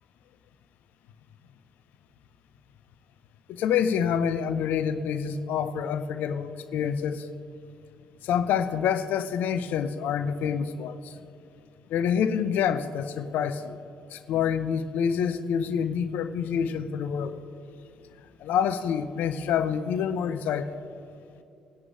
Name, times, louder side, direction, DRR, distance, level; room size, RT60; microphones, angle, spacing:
voice 1, 3.5-7.3 8.2-11.2 11.9-13.8 14.1-17.3 18.4-20.8, left 7 dB, 60° left, 11 dB, 0.5 m, -27 dB
20.0 x 10.5 x 2.5 m, 2.7 s
figure-of-eight pair, 45°, 3 cm